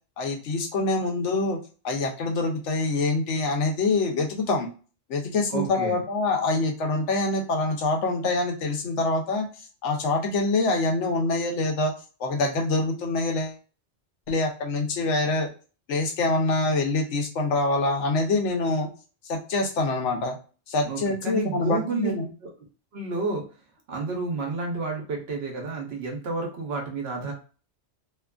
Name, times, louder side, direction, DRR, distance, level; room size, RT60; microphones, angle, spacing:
voice 1, 0.2-1.6 1.8-4.7 5.1-9.5 9.8-11.9 12.2-13.6 14.3-15.5 15.9-18.9 19.3-20.3 20.7-22.3, left 2 dB, 80° left, 2 dB, 1.0 m, -25 dB
voice 2, 5.5-6.0 20.8-22.1 22.4-22.5 22.9-23.5 23.9-27.3, right 3 dB, 60° right, 1 dB, 1.0 m, -30 dB
2.8 x 2.4 x 2.2 m, 0.37 s
omnidirectional pair, 1.2 m